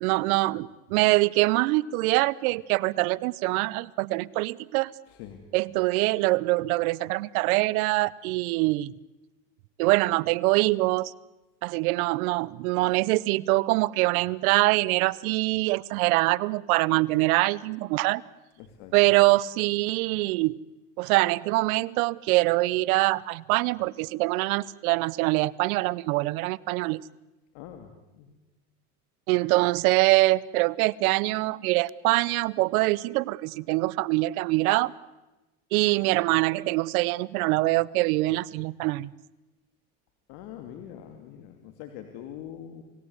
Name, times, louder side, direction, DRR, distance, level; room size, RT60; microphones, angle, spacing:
voice 1, 0.0-4.9 5.5-8.9 9.8-11.1 11.6-18.2 18.9-20.6 21.0-27.0 29.3-34.9 35.7-39.1, right 21 dB, 80° right, 23 dB, 0.9 m, -24 dB
voice 2, 5.1-5.4 18.6-18.9 27.5-28.3 40.3-42.8, left 10 dB, 70° left, 6 dB, 2.8 m, -43 dB
28.0 x 18.5 x 9.6 m, 1.1 s
supercardioid pair, 105°, 42 cm